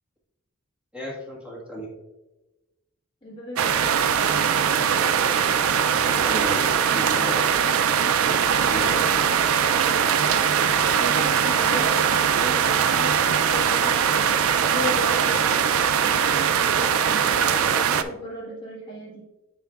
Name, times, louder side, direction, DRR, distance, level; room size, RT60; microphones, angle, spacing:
voice 1, 0.9-1.9 6.0-6.6 6.9-7.5 8.1-9.5, left 1 dB, 5° right, -4 dB, 1.5 m, -35 dB
voice 2, 3.2-4.0 10.2-14.4 14.7-16.4 16.7-19.2, equal, 25° left, -7 dB, 1.5 m, -36 dB
sound 1, 3.6-18.0, right 7 dB, 85° right, 0.4 m, -21 dB
9.4 x 4.6 x 2.4 m, 1.0 s
head